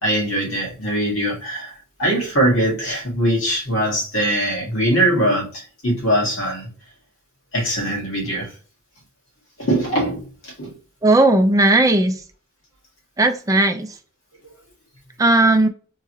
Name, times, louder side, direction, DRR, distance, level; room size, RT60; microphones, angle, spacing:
voice 1, 0.0-1.7 2.0-6.7 7.5-8.5 9.6-10.7, right 1 dB, 70° left, 1.9 m, -21 dB
voice 2, 11.0-12.1 13.2-13.9 15.2-15.7, right 2 dB, 15° right, 0.4 m, -16 dB
3.7 x 3.0 x 2.7 m
head